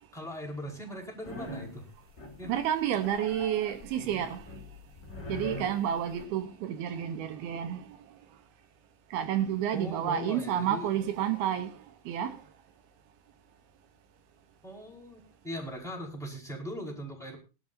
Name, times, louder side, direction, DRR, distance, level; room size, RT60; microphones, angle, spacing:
voice 1, 0.1-1.9 2.4-2.5 9.7-10.9 14.6-17.4, equal, ahead, 4.8 m, -40 dB
sound 1, 1.2-1.8 2.2-2.6 3.0-6.3, left 1 dB, 20° left, 5.2 m, -42 dB
voice 2, 2.5-4.4 5.3-7.8 9.1-11.7 12.1-12.3, right 10 dB, 80° right, 3.0 m, -30 dB
22.5 x 12.0 x 2.7 m
omnidirectional pair, 4.4 m